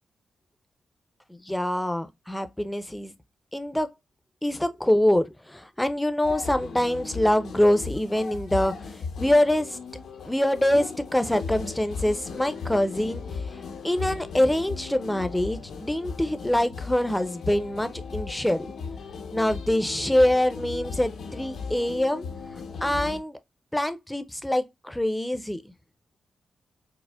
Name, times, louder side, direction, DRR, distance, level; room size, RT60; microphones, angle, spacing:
voice 1, 1.3-3.1 3.5-3.9 4.4-9.8 10.2-13.2 13.5-13.6 13.8-18.7 19.3-22.2 22.8-23.4 23.7-25.7, left 1 dB, 5° left, 0.4 m, -25 dB
sound 1, 6.2-23.2, left 5 dB, 75° left, 0.6 m, -37 dB
4.8 x 2.0 x 2.2 m
cardioid pair, 115°, 0 cm